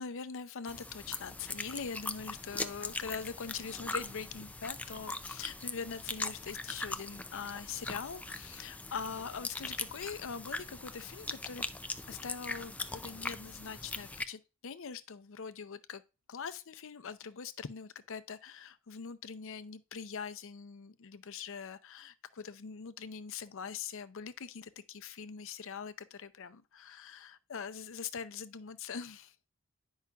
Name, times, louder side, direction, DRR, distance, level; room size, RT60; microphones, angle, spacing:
voice 1, 0.0-11.7 12.1-16.0 16.3-29.3, left 6 dB, 65° left, 0.6 m, -43 dB
sound 1, 0.7-14.2, left 2 dB, 5° left, 0.4 m, -41 dB
9.8 x 5.6 x 2.4 m
head